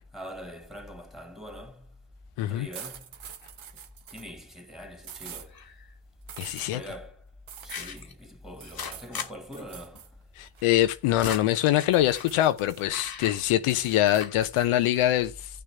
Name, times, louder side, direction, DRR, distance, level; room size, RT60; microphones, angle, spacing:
voice 1, 0.1-1.9 2.4-3.0 4.1-5.6 6.5-7.2 7.6-10.1, equal, ahead, 2.7 m, -43 dB
sound 1, 2.7-4.3 5.0-5.5 6.3-6.7 7.5-8.0 8.6-9.1 9.5-10.1 10.4-11.5 11.9-13.0 13.4-14.7, right 8 dB, 70° right, 1.3 m, -45 dB
sound 2, 5.5-5.9 6.7-6.8 7.7-8.1 8.6-9.3 9.6-9.7 9.9-10.0 10.8-12.3 12.9-13.9 14.1-14.4, left 6 dB, 45° left, 1.4 m, -38 dB
voice 2, 6.4-6.8 10.4-15.6, left 13 dB, 80° left, 0.7 m, -24 dB
15.0 x 6.7 x 3.5 m
hypercardioid pair, 40°, 50 cm